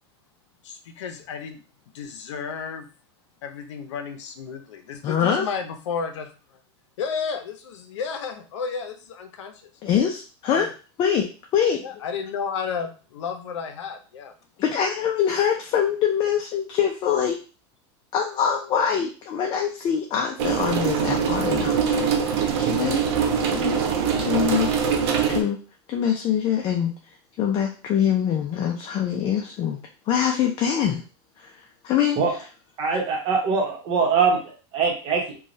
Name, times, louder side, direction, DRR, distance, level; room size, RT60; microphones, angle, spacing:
voice 1, 0.6-1.6 1.9-2.9 3.4-6.6 7.0-9.7 10.4-10.7 11.8-14.3, left 6 dB, 90° left, 6 dB, 0.6 m, -32 dB
voice 2, 5.0-5.5 9.8-10.7 11.0-11.3 11.5-11.9 14.6-17.4 18.1-23.0 23.5-23.9 24.1-24.7 25.3-25.6 25.9-26.9 27.4-29.8 30.1-31.0 31.4-31.5 31.8-32.4, left 8 dB, 30° left, 1 dB, 0.4 m, -24 dB
sound 1, 20.4-25.4, right 6 dB, 65° right, 0.6 m, -23 dB
voice 3, 32.8-35.4, right 5 dB, 40° right, 0 dB, 1.0 m, -23 dB
3.0 x 2.3 x 2.6 m, 0.36 s
supercardioid pair, 135°, 15 cm